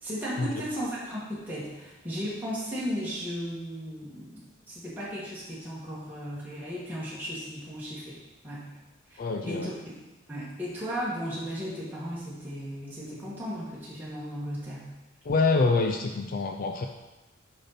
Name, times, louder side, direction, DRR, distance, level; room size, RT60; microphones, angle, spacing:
voice 1, 0.0-8.2 8.4-8.7 9.1-10.0 10.3-14.9, equal, 10° right, -9 dB, 1.7 m, -35 dB
voice 2, 9.2-9.7 15.2-16.9, left 3 dB, 45° left, 4 dB, 0.4 m, -26 dB
6.7 x 5.7 x 4.2 m, 1.1 s
head